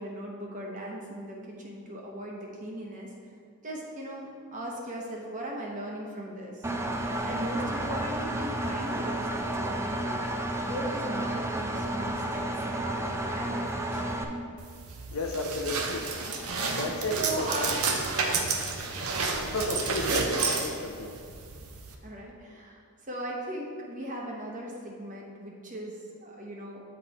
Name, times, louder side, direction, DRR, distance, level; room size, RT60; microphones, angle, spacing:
voice 1, 0.0-3.1 3.6-6.6 7.2-10.2 10.6-14.2 17.2-17.8 22.0-26.8, right 1 dB, 35° right, -2 dB, 1.0 m, -38 dB
Engine, 6.6-14.2, right 1 dB, 10° right, 0.3 m, -31 dB
sound 1, 14.6-21.9, right 4 dB, 70° right, 0.6 m, -30 dB
voice 2, 15.1-16.0 16.7-17.5 19.5-21.2, left 2 dB, 65° left, 2 dB, 0.6 m, -33 dB
7.7 x 4.1 x 4.1 m, 2.3 s
head